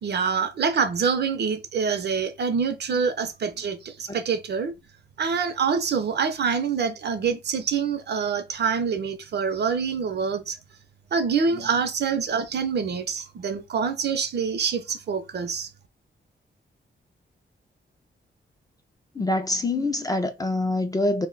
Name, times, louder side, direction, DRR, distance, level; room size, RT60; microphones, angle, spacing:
voice 1, 0.0-4.7 5.2-10.6 11.1-15.7, right 6 dB, 60° right, 0.5 m, -26 dB
voice 2, 19.1-21.3, left 2 dB, 20° left, 0.3 m, -25 dB
2.5 x 2.1 x 3.7 m
wide cardioid pair, 175°, 19 cm